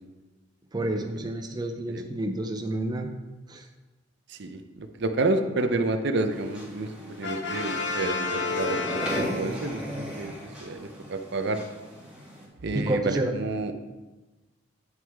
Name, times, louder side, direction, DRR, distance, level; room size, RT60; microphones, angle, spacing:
voice 1, 0.7-3.1 3.5-3.7 12.7-13.4, right 1 dB, 20° right, 3 dB, 0.5 m, -29 dB
voice 2, 4.3-10.3 10.6-11.6 12.6-13.7, right 2 dB, 60° right, 7 dB, 0.6 m, -29 dB
sound 1, 6.3-12.5, equal, 5° right, 2.0 m, -37 dB
Brass instrument, 7.2-9.9, left 3 dB, 65° left, 0.8 m, -31 dB
9.1 x 6.2 x 3.5 m, 1.2 s
head